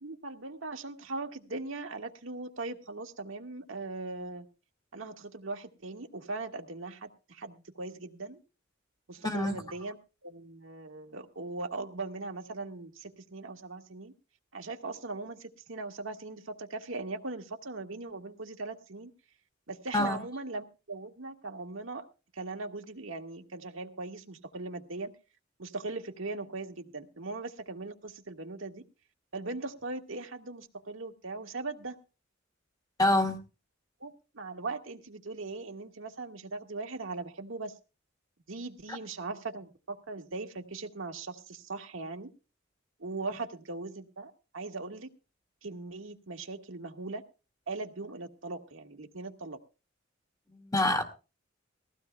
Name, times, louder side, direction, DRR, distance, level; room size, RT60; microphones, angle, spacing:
voice 1, 0.0-4.4 4.9-8.4 9.1-10.0 10.2-14.1 14.5-19.1 19.7-22.1 22.3-25.1 25.6-28.8 29.3-32.0 34.0-37.7 38.5-42.3 43.0-45.1 45.6-47.2 47.7-49.6, right 3 dB, 75° right, 1.7 m, -39 dB
voice 2, 9.2-9.6 19.9-20.2 33.0-33.4 50.5-51.0, left 1 dB, 20° left, 2.1 m, -26 dB
20.5 x 15.5 x 2.3 m
head